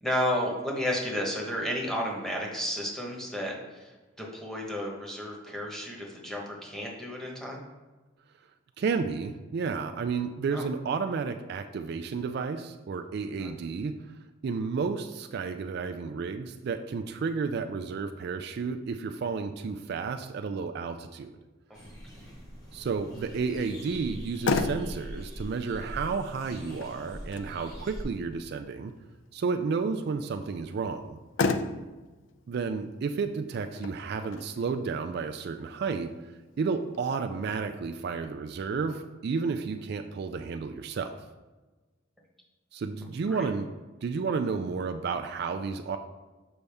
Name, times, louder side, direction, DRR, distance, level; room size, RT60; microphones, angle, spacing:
voice 1, 0.0-3.9 4.2-7.6 10.5-10.6 13.4-13.5 43.3-43.5, equal, ahead, -2 dB, 1.1 m, -32 dB
voice 2, 8.8-13.9 14.4-21.3 22.7-28.9 29.3-31.2 32.5-36.1 36.6-41.2 42.7-43.7 44.0-46.0, right 5 dB, 55° right, 7 dB, 0.3 m, -32 dB
sound 1, 21.7-28.0, equal, 20° left, 1.3 m, -42 dB
Motor vehicle (road), 24.1-37.0, left 4 dB, 65° left, 0.4 m, -36 dB
6.8 x 5.3 x 3.5 m, 1.2 s
head